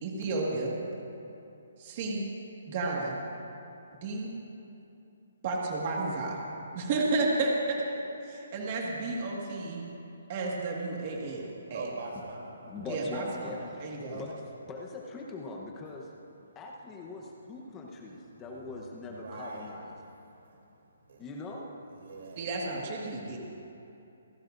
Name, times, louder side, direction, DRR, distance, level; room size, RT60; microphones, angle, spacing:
voice 1, 0.0-0.8 1.8-2.2 2.7-3.2 4.0-4.3 5.4-6.4 6.7-7.8 8.2-9.9 10.3-11.8 12.8-13.5 13.8-14.2 22.4-23.4, right 3 dB, 30° right, -2 dB, 1.9 m, -32 dB
voice 2, 11.7-12.9 18.1-18.3 18.6-19.7 21.1-21.2 21.9-22.5, right 3 dB, 55° right, 0 dB, 3.3 m, -44 dB
voice 3, 12.7-14.3 14.6-16.1 16.5-19.9 21.2-21.6, left 3 dB, 10° left, -1 dB, 1.0 m, -41 dB
27.5 x 17.0 x 2.6 m, 2.8 s
hypercardioid pair, 175°, 0 cm